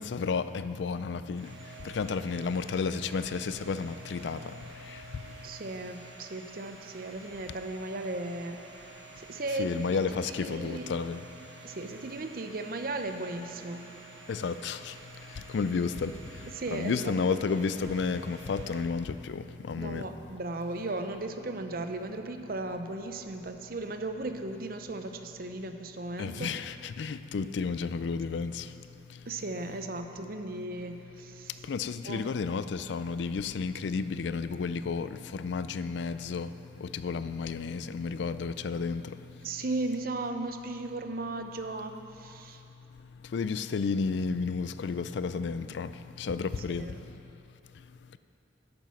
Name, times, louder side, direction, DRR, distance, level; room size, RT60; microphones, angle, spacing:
voice 1, 0.0-1.5 1.9-4.4 9.6-11.2 14.3-14.8 15.5-16.1 16.7-20.0 26.2-28.6 31.7-35.1 35.3-36.5 36.8-39.0 43.3-45.9 46.2-46.9, left 5 dB, 75° left, 13 dB, 0.4 m, -31 dB
Domestic sounds home sounds, 1.3-18.8, right 3 dB, 80° right, 1.6 m, -50 dB
voice 2, 5.4-8.6 9.2-10.9 11.6-13.9 16.5-17.4 19.8-26.5 29.3-31.5 32.1-32.3 39.4-42.6 46.7-47.0, right 2 dB, 50° right, 7 dB, 0.6 m, -36 dB
10.5 x 8.9 x 5.8 m, 2.8 s
head